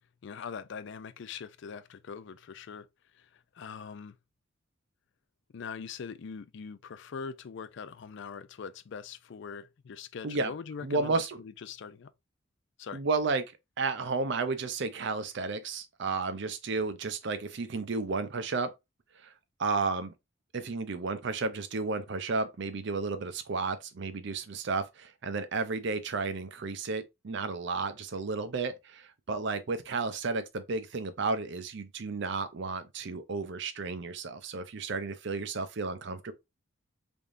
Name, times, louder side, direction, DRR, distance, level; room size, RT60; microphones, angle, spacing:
voice 1, 0.2-2.9 3.1-4.2 5.5-12.1 12.8-13.0, left 6 dB, 65° left, 0.4 m, -42 dB
voice 2, 10.8-11.4 12.9-18.7 19.2-19.3 19.6-20.1 20.5-36.3, right 4 dB, 60° right, 0.6 m, -32 dB
3.6 x 3.5 x 2.5 m
head